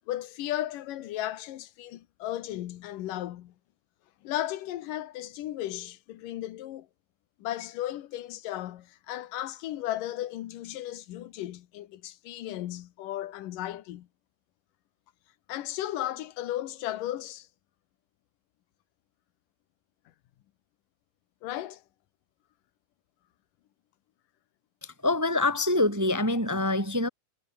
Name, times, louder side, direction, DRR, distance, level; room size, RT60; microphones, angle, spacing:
voice 1, 0.1-3.5 4.2-6.9 7.4-14.1 15.5-17.5 21.4-21.8, left 13 dB, 85° left, 2.8 m, -35 dB
voice 2, 24.8-27.1, left 2 dB, 5° right, 1.5 m, -25 dB
omnidirectional pair, 3.7 m